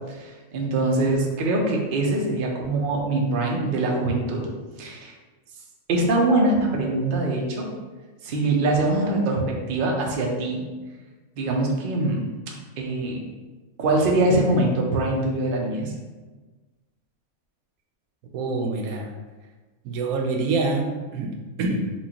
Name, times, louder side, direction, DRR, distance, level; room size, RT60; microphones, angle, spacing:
voice 1, 0.1-4.4 4.8-5.1 5.9-7.7 8.2-10.6 11.4-12.3 12.8-13.2 13.8-15.9, right 2 dB, 55° right, 0 dB, 0.6 m, -23 dB
voice 2, 18.3-19.1 19.8-21.9, right 3 dB, 85° right, 2 dB, 1.0 m, -26 dB
4.4 x 2.4 x 2.8 m, 1.3 s
omnidirectional pair, 1.5 m